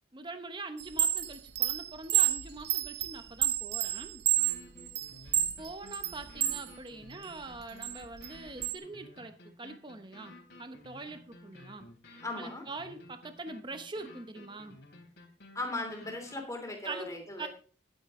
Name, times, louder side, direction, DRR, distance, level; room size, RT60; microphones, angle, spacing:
voice 1, 0.1-4.2 5.2-10.3 10.6-11.9 12.4-14.8 16.8-17.5, right 3 dB, 25° right, 8 dB, 1.0 m, -43 dB
Chime, 0.8-6.6 7.1-8.8, right 12 dB, 60° right, 0.8 m, -30 dB
sound 1, 2.9-3.0 3.4-3.5 3.9-4.0 4.4-16.4, left 2 dB, 65° left, 3.4 m, -54 dB
voice 2, 12.2-12.6 15.5-17.5, left 2 dB, 20° left, 2 dB, 3.1 m, -38 dB
11.5 x 9.4 x 3.8 m, 0.41 s
head